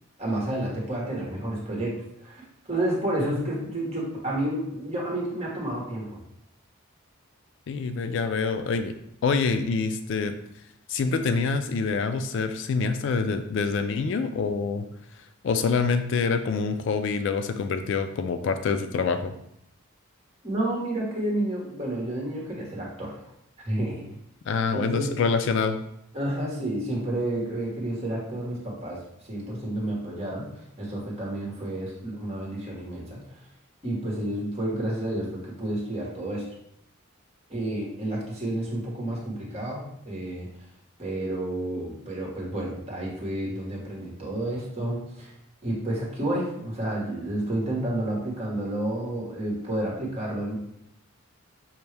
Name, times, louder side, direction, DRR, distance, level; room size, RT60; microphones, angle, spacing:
voice 1, 0.2-1.9 2.2-6.2 20.4-23.3 23.6-24.1 24.7-25.2 26.1-33.4 33.8-36.5 37.5-40.5 41.0-45.3 45.6-50.6, right 1 dB, 30° right, -3 dB, 1.3 m, -30 dB
voice 2, 7.7-8.9 9.2-10.4 10.9-14.8 15.4-19.3 24.5-25.8, left 4 dB, 60° left, 9 dB, 0.3 m, -26 dB
5.7 x 2.6 x 3.3 m, 0.75 s
head